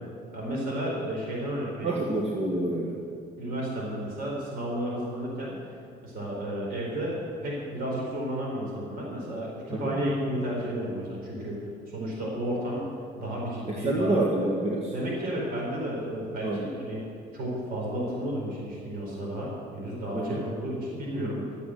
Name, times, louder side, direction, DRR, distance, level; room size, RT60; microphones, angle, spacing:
voice 1, 0.3-2.1 3.4-5.6 6.0-12.9 13.1-14.1 14.9-17.0 17.3-21.6, equal, 60° right, -4 dB, 4.3 m, -32 dB
voice 2, 1.8-3.0 9.7-10.0 13.7-14.9 16.4-16.6 20.1-20.4, right 2 dB, 40° right, -2 dB, 1.7 m, -27 dB
13.5 x 9.7 x 7.8 m, 2.4 s
cardioid pair, 110°, 17 cm